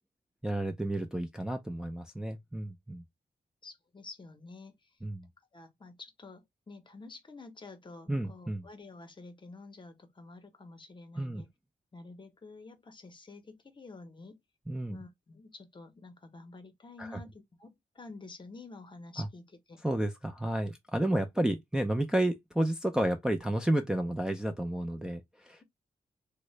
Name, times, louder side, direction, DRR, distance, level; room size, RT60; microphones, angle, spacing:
voice 1, 0.4-3.0 5.0-5.3 8.1-8.7 11.2-11.4 14.7-15.0 17.0-17.2 19.2-19.3 19.8-25.6, right 1 dB, 5° right, 0.4 m, -31 dB
voice 2, 3.6-4.9 5.5-11.5 11.9-14.4 14.9-19.8 23.7-23.9, left 3 dB, 30° left, 0.7 m, -49 dB
3.6 x 2.1 x 3.0 m
wide cardioid pair, 130°, 16 cm